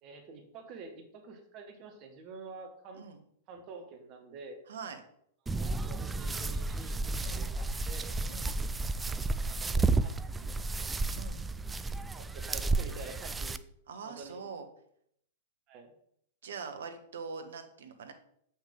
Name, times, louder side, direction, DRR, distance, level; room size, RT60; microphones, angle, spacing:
voice 1, 0.0-3.0 3.5-4.6 5.5-8.1 9.5-10.5 10.7-10.9 12.1-13.6 14.0-14.4 15.7-15.9, right 4 dB, 40° right, 4 dB, 1.4 m, -48 dB
voice 2, 4.7-5.0 7.2-7.4 8.3-8.6 11.1-11.4 13.9-14.7 16.4-18.1, right 5 dB, 65° right, 7 dB, 1.0 m, -43 dB
sound 1, 5.5-13.6, right 3 dB, 10° right, 0.3 m, -32 dB
7.1 x 5.7 x 3.8 m, 0.70 s
figure-of-eight pair, 100°, 0 cm